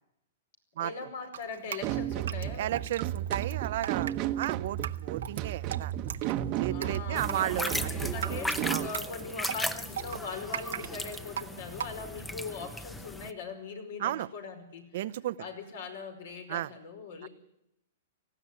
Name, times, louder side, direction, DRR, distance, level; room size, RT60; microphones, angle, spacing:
voice 1, 0.8-2.8 6.7-14.9 15.4-17.3, left 4 dB, 70° left, 5 dB, 5.1 m, -41 dB
Drip, 1.3-12.3, right 9 dB, 80° right, 1.0 m, -39 dB
sound 1, 1.8-8.9, right 12 dB, 35° right, 1.0 m, -33 dB
voice 2, 2.5-5.9 6.6-7.7 8.7-8.9 14.0-14.3 14.9-15.4 16.5-16.7 17.2-17.3, right 13 dB, 60° right, 15 dB, 0.7 m, -33 dB
sound 2, 7.2-13.3, left 1 dB, 5° left, 0.8 m, -37 dB
19.0 x 15.0 x 9.7 m, 0.83 s
hypercardioid pair, 140°, 0 cm